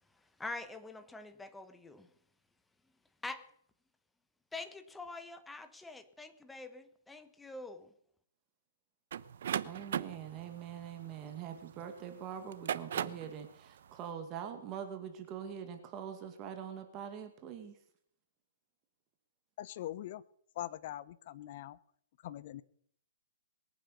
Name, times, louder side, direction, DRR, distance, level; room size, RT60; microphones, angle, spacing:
voice 1, 0.4-2.1 3.2-3.5 4.5-7.9, left 3 dB, 5° left, 1.1 m, -45 dB
sound 1, 9.1-11.8 12.4-13.3, right 9 dB, 55° right, 0.9 m, -37 dB
voice 2, 9.6-17.8, right 8 dB, 20° right, 2.1 m, -44 dB
voice 3, 19.6-20.2 20.6-21.8 22.2-22.6, left 13 dB, 35° left, 0.8 m, -42 dB
22.0 x 9.4 x 6.9 m
hypercardioid pair, 165°, 0 cm